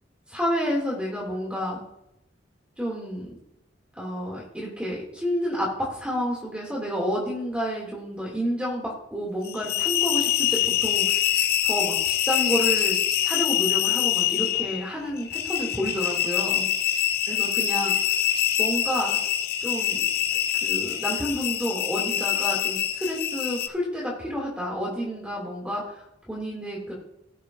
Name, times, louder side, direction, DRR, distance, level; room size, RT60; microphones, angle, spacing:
voice 1, 0.3-1.8 2.8-3.4 3.9-16.7 17.3-17.9 18.6-19.2 19.6-20.1 20.6-26.9, equal, 5° right, -4 dB, 2.4 m, -30 dB
sound 1, 9.4-23.7, left 11 dB, 55° left, 0.4 m, -25 dB
17.0 x 7.2 x 2.6 m, 0.81 s
head